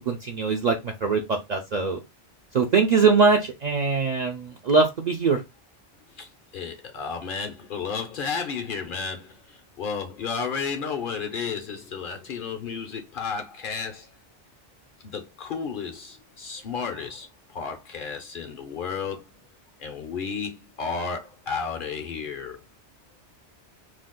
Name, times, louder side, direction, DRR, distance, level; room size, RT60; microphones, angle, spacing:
voice 1, 0.0-2.0 2.5-5.4, right 4 dB, 60° right, 0.4 m, -22 dB
voice 2, 6.1-14.1 15.0-19.3 19.8-22.6, left 5 dB, 60° left, 0.6 m, -33 dB
2.5 x 2.3 x 3.5 m
omnidirectional pair, 1.2 m